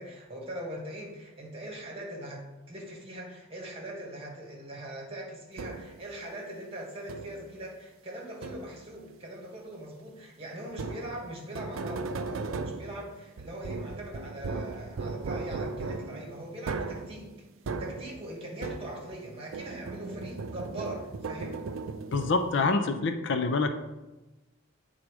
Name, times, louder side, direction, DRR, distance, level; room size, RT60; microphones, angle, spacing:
voice 1, 0.0-17.3 17.8-21.6, right 1 dB, 30° right, -1 dB, 1.5 m, -41 dB
sound 1, 5.6-6.1 7.1-7.6 8.4-9.0 10.7-19.2 19.5-22.7, right 4 dB, 75° right, 0.4 m, -37 dB
voice 2, 22.1-23.8, left 3 dB, 60° left, 8 dB, 0.5 m, -26 dB
8.4 x 3.8 x 4.8 m, 1.1 s
head